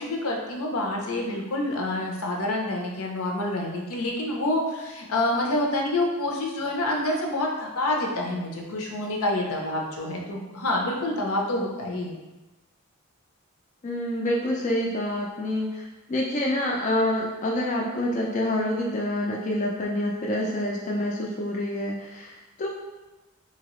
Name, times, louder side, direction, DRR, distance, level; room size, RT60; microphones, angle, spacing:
voice 1, 0.0-12.2, left 1 dB, 75° left, 0 dB, 0.6 m, -27 dB
voice 2, 13.8-22.7, left 1 dB, 35° left, -2 dB, 0.4 m, -27 dB
2.8 x 2.8 x 3.0 m, 1.1 s
head